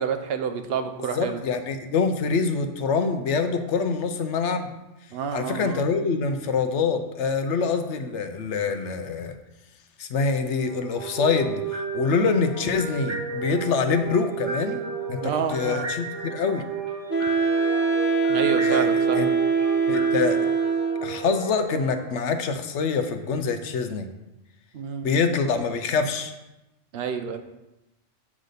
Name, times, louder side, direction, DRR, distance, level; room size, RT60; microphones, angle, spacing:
voice 1, 0.0-1.4 5.1-5.8 15.2-15.9 18.3-19.2 24.7-25.1 26.9-27.4, right 7 dB, 60° right, 8 dB, 0.9 m, -28 dB
voice 2, 1.0-4.7 5.3-9.3 10.0-14.8 15.1-16.6 18.6-19.3 19.9-20.4 21.0-24.1 25.0-26.3, left 5 dB, 70° left, 7 dB, 1.0 m, -25 dB
sound 1, 10.5-22.6, right 4 dB, 75° right, 3.0 m, -34 dB
Wind instrument woodwind instrument, 17.1-21.2, right 5 dB, 50° left, 1.1 m, -23 dB
7.3 x 3.9 x 6.5 m, 0.97 s
omnidirectional pair, 1.2 m